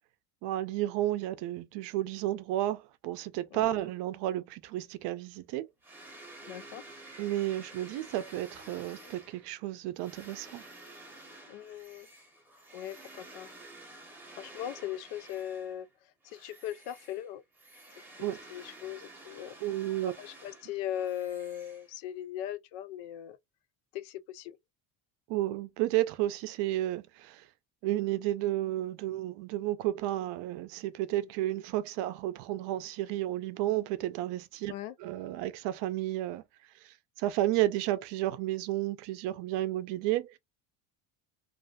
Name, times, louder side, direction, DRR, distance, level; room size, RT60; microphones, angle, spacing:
voice 1, 0.4-5.7 7.2-10.6 18.2-18.4 19.6-20.1 25.3-27.5 27.8-34.7 35.0-36.4 36.8-40.4, right 15 dB, 65° right, 0.5 m, -32 dB
sound 1, 5.8-15.9 16.2-22.2, right 2 dB, 5° right, 0.7 m, -51 dB
voice 2, 6.4-6.8 11.5-12.1 12.7-13.5 14.4-15.9 16.2-17.4 18.2-19.6 20.2-23.4 23.9-24.6 34.7-35.0, left 11 dB, 90° left, 0.6 m, -39 dB
2.5 x 2.4 x 2.2 m
cardioid pair, 150°, 45 cm